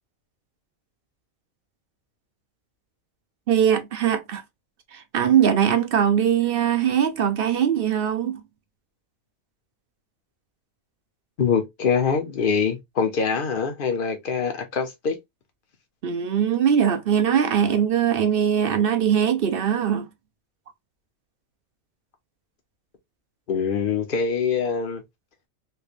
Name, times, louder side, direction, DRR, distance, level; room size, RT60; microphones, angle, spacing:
voice 1, 3.5-4.4 4.9-8.4 16.0-20.1, right 8 dB, 60° right, 0.6 m, -21 dB
voice 2, 11.4-15.2 23.5-25.0, left 6 dB, 45° left, 0.9 m, -24 dB
3.4 x 3.2 x 2.5 m
omnidirectional pair, 1.4 m